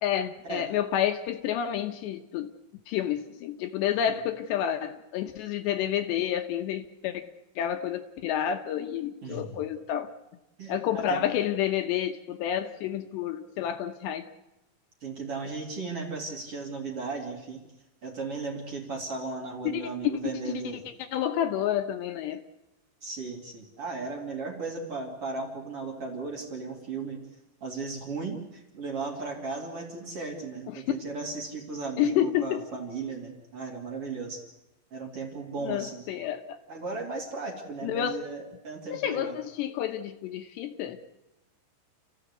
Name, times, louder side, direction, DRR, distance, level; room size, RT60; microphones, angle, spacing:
voice 1, 0.0-2.5 2.9-7.2 7.6-10.1 10.7-14.3 19.6-19.8 20.5-20.6 21.1-22.4 30.7-30.8 32.0-32.6 35.6-36.6 37.8-38.2 38.9-41.0, left 10 dB, 75° left, 7 dB, 3.0 m, -29 dB
voice 2, 9.2-9.6 10.6-11.2 15.0-17.7 18.0-20.8 23.0-27.2 27.6-34.4 34.9-36.0 36.7-39.4, right 4 dB, 35° right, 0 dB, 3.0 m, -36 dB
29.0 x 14.5 x 8.2 m, 0.96 s
omnidirectional pair, 5.4 m